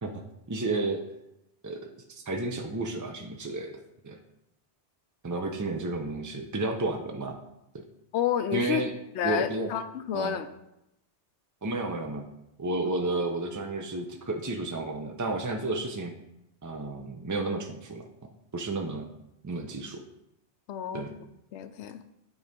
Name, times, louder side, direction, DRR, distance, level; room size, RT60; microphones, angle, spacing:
voice 1, 0.5-1.0 1.6-1.8 2.1-4.2 5.2-7.4 8.5-8.9 9.2-9.7 10.1-10.4 11.6-12.2 12.6-16.1 16.6-18.0 18.5-19.1 19.4-20.0 20.9-21.1, right 2 dB, 30° right, 3 dB, 0.3 m, -31 dB
voice 2, 8.1-8.9 9.1-10.5 20.7-21.0 21.5-22.0, left 9 dB, 75° left, 11 dB, 0.9 m, -30 dB
9.4 x 3.2 x 5.1 m, 0.85 s
omnidirectional pair, 1.2 m